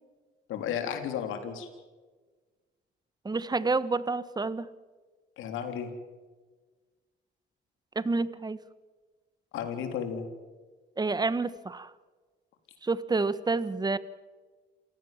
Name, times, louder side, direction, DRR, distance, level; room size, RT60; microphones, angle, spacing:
voice 1, 0.5-1.7 5.4-5.9 9.5-10.3, left 8 dB, 90° left, 6 dB, 3.6 m, -33 dB
voice 2, 3.2-4.7 7.9-8.6 11.0-11.9 12.8-14.0, right 3 dB, 20° right, 16 dB, 1.2 m, -28 dB
28.0 x 16.5 x 7.4 m, 1.3 s
cardioid pair, 90°, 20 cm